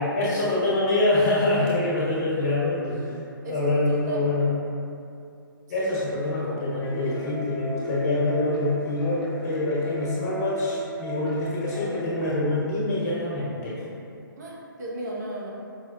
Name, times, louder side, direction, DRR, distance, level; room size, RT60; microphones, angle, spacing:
voice 1, 0.0-3.1 3.5-4.4 5.7-13.8, left 2 dB, 45° left, -8 dB, 1.2 m, -25 dB
voice 2, 3.4-4.3 5.8-5.9 14.4-15.5, right 1 dB, 50° right, -4 dB, 0.7 m, -35 dB
sound 1, 6.8-12.3, left 2 dB, 85° left, 0.7 m, -37 dB
5.4 x 2.1 x 2.3 m, 2.5 s
hypercardioid pair, 140°, 12 cm